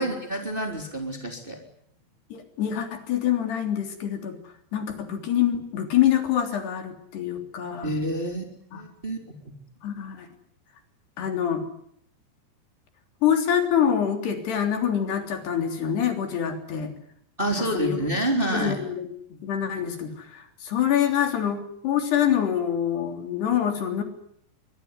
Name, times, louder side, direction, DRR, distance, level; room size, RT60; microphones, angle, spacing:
voice 1, 0.0-1.6 7.8-8.4 8.7-9.2 17.4-18.8, right 1 dB, 15° right, 3 dB, 3.4 m, -27 dB
voice 2, 2.3-4.4 4.7-7.9 8.7-8.8 9.8-10.3 11.2-11.6 13.2-16.9 17.4-18.0 18.5-19.1 19.4-24.0, left 9 dB, 70° left, 6 dB, 5.4 m, -25 dB
23.5 x 23.0 x 9.6 m, 0.68 s
omnidirectional pair, 5.0 m